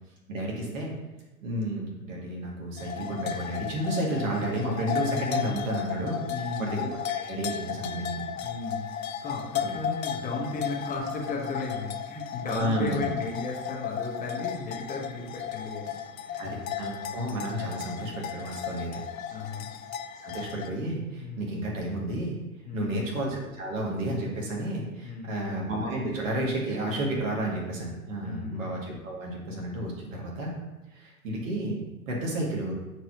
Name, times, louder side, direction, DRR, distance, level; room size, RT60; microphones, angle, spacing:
voice 1, 0.3-0.9 1.4-6.2 6.6-8.3 9.6-9.7 12.5-13.1 16.4-19.0 20.2-22.4 22.7-30.6 30.9-32.7, right 1 dB, 55° right, -2 dB, 2.1 m, -31 dB
sound 1, 2.8-20.7, left 9 dB, 65° left, 0.7 m, -35 dB
voice 2, 6.2-6.8 8.4-16.5 19.3-19.7 21.1-21.5 22.7-23.1 25.0-25.6 28.2-28.7, left 3 dB, 20° left, -1 dB, 1.4 m, -35 dB
8.9 x 4.7 x 3.0 m, 1.0 s
figure-of-eight pair, 90°, 45 cm